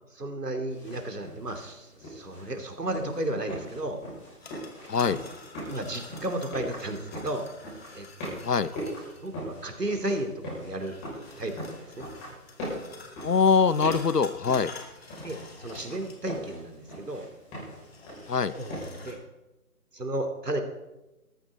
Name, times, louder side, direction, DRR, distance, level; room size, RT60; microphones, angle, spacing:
voice 1, 0.1-4.0 5.6-7.5 7.9-8.4 8.7-11.0 11.4-12.1 15.2-17.3 18.5-19.2 19.9-20.6, right 1 dB, 80° right, 5 dB, 3.0 m, -34 dB
sound 1, 0.7-19.1, equal, 15° left, 6.7 m, -41 dB
sound 2, 4.1-9.3 10.8-16.5 16.7-16.8 17.7-19.2, left 4 dB, 40° left, 2.5 m, -48 dB
voice 2, 13.2-14.7 18.3-18.5, left 5 dB, 75° left, 16 dB, 1.0 m, -23 dB
19.0 x 14.0 x 4.2 m, 1.0 s
figure-of-eight pair, 155°, 47 cm